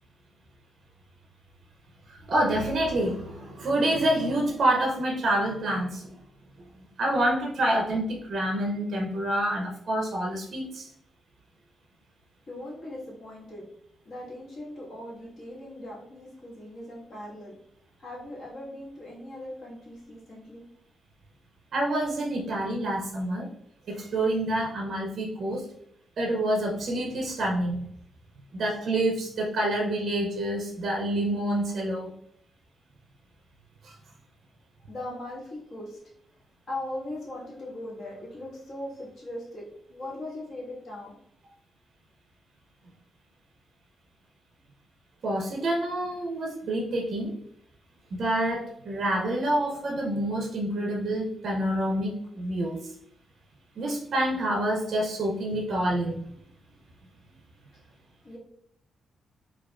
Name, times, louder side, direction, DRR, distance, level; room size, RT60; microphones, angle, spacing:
voice 1, 2.1-6.2 7.0-10.9 21.7-23.5 23.9-25.7 26.2-27.9 28.5-32.1 33.8-33.9 45.2-47.4 48.1-52.9 53.8-56.2, right 1 dB, 50° right, 0 dB, 0.5 m, -27 dB
voice 2, 12.5-13.7 14.0-17.5 18.0-20.6 34.9-36.0 36.3-36.4 36.7-41.2 58.2-58.4, left 1 dB, 55° left, -5 dB, 1.4 m, -39 dB
4.6 x 2.3 x 2.3 m, 0.70 s
cardioid pair, 135°, 0 cm